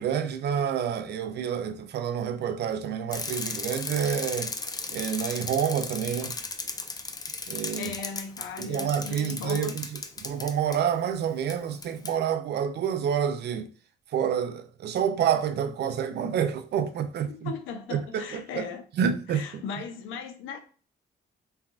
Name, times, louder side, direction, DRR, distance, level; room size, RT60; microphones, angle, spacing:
voice 1, 0.0-4.5 4.9-6.3 7.5-7.9 8.6-9.9 10.2-13.7 14.1-17.5 17.9-18.6 19.0-19.6, right 8 dB, 60° right, 0.4 m, -28 dB
Bicycle, 3.1-10.8 11.5-11.6 11.8-12.1, left 4 dB, 20° left, 0.3 m, -36 dB
voice 2, 7.5-9.8 17.3-18.9 19.3-20.6, left 6 dB, 90° left, 0.5 m, -38 dB
3.3 x 2.2 x 2.4 m
cardioid pair, 90°, 20 cm